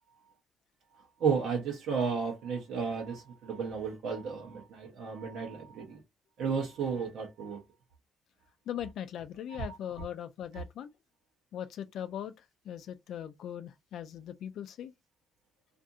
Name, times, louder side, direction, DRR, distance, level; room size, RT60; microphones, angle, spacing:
voice 1, 1.2-6.0 6.4-7.6 9.7-9.8 10.5-10.6, right 6 dB, 80° right, 0.7 m, -33 dB
voice 2, 8.7-10.9 11.5-12.3 12.7-14.9, left 10 dB, 75° left, 0.3 m, -39 dB
2.6 x 2.5 x 2.3 m
cardioid pair, 90°, 0 cm